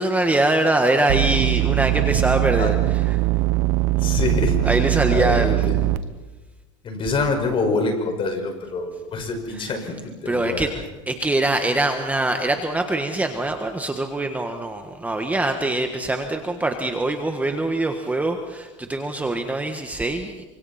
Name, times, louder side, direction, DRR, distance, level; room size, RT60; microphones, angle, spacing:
voice 1, 0.0-3.2 4.6-5.7 9.5-9.8 10.2-10.7 11.1-20.5, right 2 dB, 10° right, 5 dB, 1.5 m, -23 dB
sound 1, 1.1-6.0, right 17 dB, 70° right, 1.2 m, -21 dB
voice 2, 4.0-4.6 5.1-5.7 6.8-10.7, left 3 dB, 35° left, 4 dB, 5.4 m, -25 dB
28.0 x 25.5 x 4.3 m, 1.2 s
supercardioid pair, 125°, 16 cm